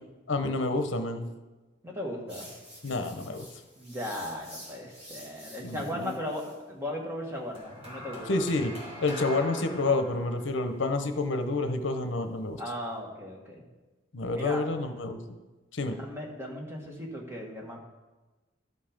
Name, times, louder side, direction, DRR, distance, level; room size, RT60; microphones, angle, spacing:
voice 1, 0.3-1.2 2.8-3.5 5.6-6.1 8.3-8.7 9.0-12.6 14.1-15.4 15.7-16.0, left 2 dB, 70° left, 7 dB, 0.8 m, -29 dB
voice 2, 1.8-2.5 3.8-8.4 12.6-13.6 14.3-14.6 15.8-17.8, left 1 dB, 15° right, -1 dB, 1.6 m, -37 dB
sound 1, 2.3-6.6 7.5-12.9, equal, 30° right, 3.3 m, -46 dB
12.5 x 5.5 x 5.1 m, 1.2 s
head